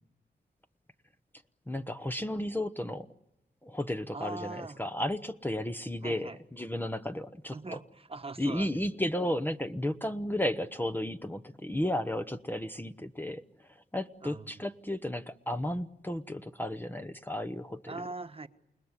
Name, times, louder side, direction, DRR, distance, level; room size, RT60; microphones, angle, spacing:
voice 1, 1.7-3.1 3.6-7.6 8.4-13.4 13.9-18.0, left 1 dB, 10° left, 9 dB, 0.9 m, -33 dB
voice 2, 4.1-4.8 6.0-6.4 7.5-9.0 10.3-10.4 14.2-14.5 17.9-18.5, right 3 dB, 35° right, 8 dB, 1.3 m, -41 dB
29.0 x 19.5 x 9.8 m, 0.93 s
cardioid pair, 85°, 18 cm